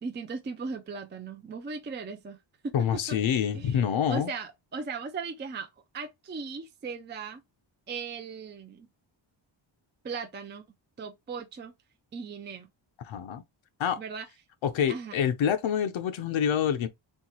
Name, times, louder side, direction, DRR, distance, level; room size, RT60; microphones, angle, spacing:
voice 1, 0.0-2.4 2.6-3.2 3.5-3.8 4.1-5.7 5.9-7.4 7.9-8.9 10.0-10.6 11.0-11.7 12.1-12.7 14.0-14.3 14.9-15.2, right 5 dB, 25° right, 0.4 m, -37 dB
voice 2, 2.7-4.3 13.0-13.4 13.8-14.0 14.6-16.9, left 8 dB, 70° left, 0.8 m, -27 dB
4.5 x 3.3 x 2.9 m
wide cardioid pair, 170°, 48 cm